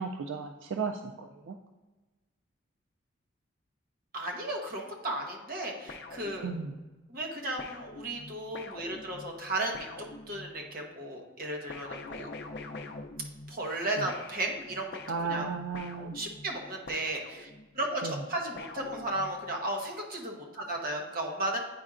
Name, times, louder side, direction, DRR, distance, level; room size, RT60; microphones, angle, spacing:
voice 1, 0.0-1.6 6.4-6.7 14.0-14.1 15.1-16.2 18.0-18.1, right 5 dB, 70° right, 5 dB, 0.3 m, -35 dB
voice 2, 4.1-6.5 7.1-10.0 10.3-12.3 13.5-15.5 16.1-17.5 17.7-21.6, right 1 dB, 50° right, 1 dB, 1.0 m, -34 dB
sound 1, 5.9-6.9 7.6-10.7 11.7-13.8 14.1-17.8 18.6-19.6, left 2 dB, 55° left, 0.5 m, -45 dB
9.5 x 4.3 x 2.4 m, 1.2 s
head